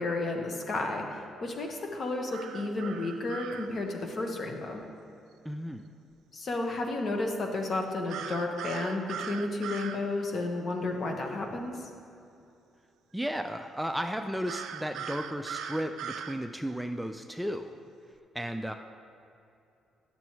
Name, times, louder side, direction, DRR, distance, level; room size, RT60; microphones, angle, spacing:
voice 1, 0.0-4.8 6.3-11.9, left 2 dB, 50° left, 2 dB, 1.0 m, -32 dB
sound 1, 2.3-3.7 8.1-10.0 14.5-16.4, right 8 dB, 85° right, 0.4 m, -39 dB
voice 2, 5.4-5.9 13.1-17.8 18.3-18.7, equal, 5° right, 6 dB, 0.3 m, -34 dB
9.3 x 6.9 x 3.1 m, 2.7 s
cardioid pair, 90°, 0 cm